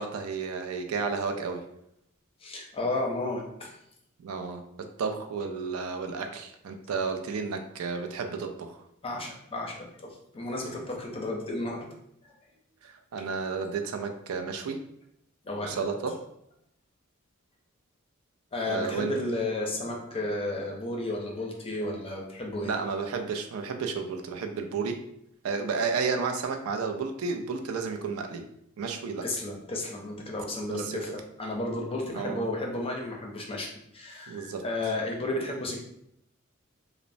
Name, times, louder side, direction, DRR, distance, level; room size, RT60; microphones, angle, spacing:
voice 1, 0.0-1.6 4.2-8.8 12.8-14.8 15.6-16.2 18.7-19.1 22.6-25.0 25.4-28.4 28.8-29.2 30.7-31.1 32.1-32.4 34.3-34.6, right 5 dB, 80° right, 5 dB, 0.4 m, -32 dB
voice 2, 2.4-3.8 9.0-11.9 12.2-12.3 15.4-15.8 18.5-22.7 29.2-31.1 31.4-35.8, left 2 dB, 25° left, 0 dB, 0.5 m, -33 dB
3.0 x 2.0 x 2.6 m, 0.77 s
head